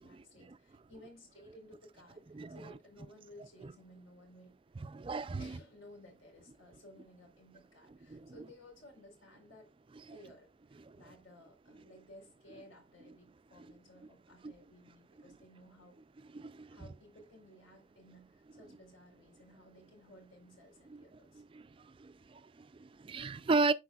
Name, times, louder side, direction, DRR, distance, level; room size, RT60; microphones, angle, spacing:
voice 1, 0.0-4.5 5.4-9.7 10.1-16.0 16.7-21.4, left 1 dB, 85° left, 4.1 m, -57 dB
voice 2, 4.8-5.5 8.1-8.3 16.3-16.8 21.3-21.7 22.0-23.7, right 3 dB, 25° right, 0.3 m, -34 dB
12.0 x 4.7 x 2.3 m
head